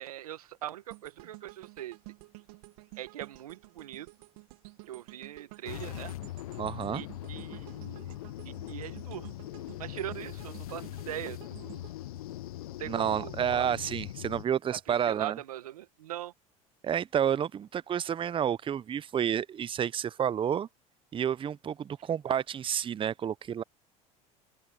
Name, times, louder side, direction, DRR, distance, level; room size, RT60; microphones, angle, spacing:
voice 1, 0.0-2.0 3.0-4.1 4.9-6.1 6.9-8.1 8.4-9.3 9.8-11.8 12.8-13.7 14.7-16.3, right 13 dB, 90° right, 1.2 m, -41 dB
sound 1, 0.9-13.1 13.5-13.7, right 26 dB, 75° right, 1.9 m, -52 dB
sound 2, 5.7-14.4, left 15 dB, 85° left, 0.5 m, -41 dB
voice 2, 6.6-7.0 12.9-15.4 16.8-20.7 21.1-23.6, right 9 dB, 30° right, 0.6 m, -30 dB
open air
hypercardioid pair, 80°, 18 cm